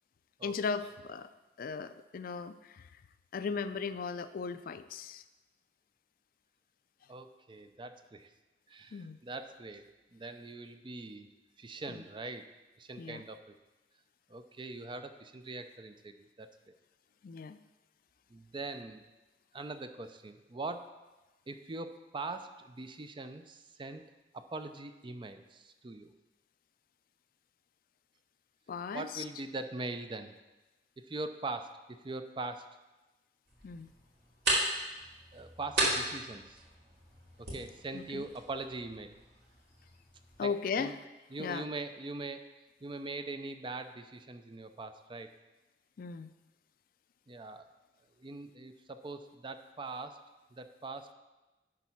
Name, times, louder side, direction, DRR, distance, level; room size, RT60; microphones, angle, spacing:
voice 1, 0.4-1.3 1.6-2.9 3.3-5.2 8.9-9.2 11.9-12.0 13.0-13.2 17.2-17.6 28.7-29.2 33.6-33.9 37.9-38.2 40.4-40.9 41.4-41.6 46.0-46.3, left 5 dB, 55° left, 12 dB, 0.4 m, -37 dB
voice 2, 7.1-8.3 8.7-11.3 11.6-12.5 12.8-13.6 14.3-16.5 18.3-19.1 19.5-20.9 21.5-24.0 24.3-26.1 28.9-30.3 31.0-31.8 32.0-32.7 35.3-36.6 37.4-39.1 40.4-40.9 41.3-42.5 42.8-45.3 47.3-47.7 48.2-50.2 50.5-51.1, right 3 dB, 30° right, 8 dB, 0.5 m, -42 dB
sound 1, 33.5-40.5, right 2 dB, 70° right, 2.4 m, -36 dB
10.5 x 4.1 x 5.7 m, 1.1 s
head